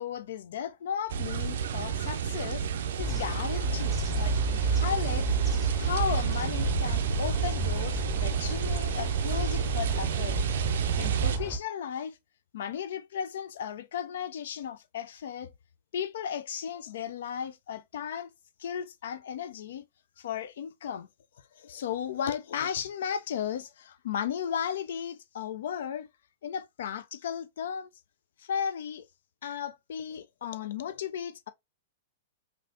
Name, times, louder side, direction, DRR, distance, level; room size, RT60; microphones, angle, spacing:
voice 1, 0.0-2.7 3.0-5.3 5.7-10.4 11.0-12.2 12.5-15.5 15.9-18.3 18.6-19.9 20.2-21.1 21.5-26.1 26.4-27.9 28.4-29.1 29.4-31.5, left 8 dB, 70° left, 0.3 m, -35 dB
sound 1, 1.1-11.4, right 7 dB, 70° right, 0.4 m, -31 dB
sound 2, 3.0-11.6, right 3 dB, 15° left, 1.4 m, -31 dB
3.2 x 2.7 x 2.5 m
hypercardioid pair, 110°, 0 cm